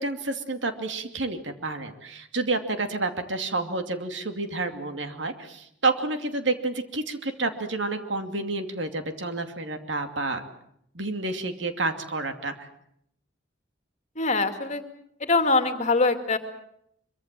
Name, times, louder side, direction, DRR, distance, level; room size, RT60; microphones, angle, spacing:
voice 1, 0.0-10.4 10.9-12.7, right 3 dB, 70° right, 7 dB, 2.7 m, -29 dB
voice 2, 14.2-14.8 15.2-16.4, left 3 dB, 40° left, 8 dB, 2.3 m, -23 dB
24.5 x 23.5 x 7.6 m, 0.72 s
head